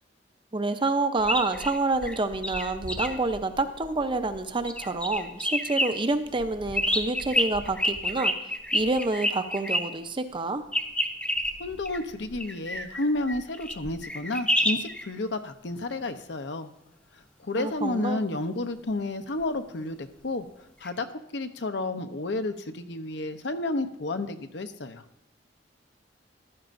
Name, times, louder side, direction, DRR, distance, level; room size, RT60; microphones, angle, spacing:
voice 1, 0.5-8.3 8.7-10.6 17.6-18.2, right 3 dB, 30° right, 8 dB, 0.7 m, -28 dB
sound 1, 1.2-4.4 4.7-5.9 6.4-9.8 10.7-15.0 20.8-20.9, equal, 5° left, 0.7 m, -28 dB
voice 2, 11.6-16.7 17.4-20.5 20.8-25.0, left 2 dB, 75° left, 8 dB, 0.8 m, -31 dB
14.5 x 12.0 x 2.6 m, 0.82 s
head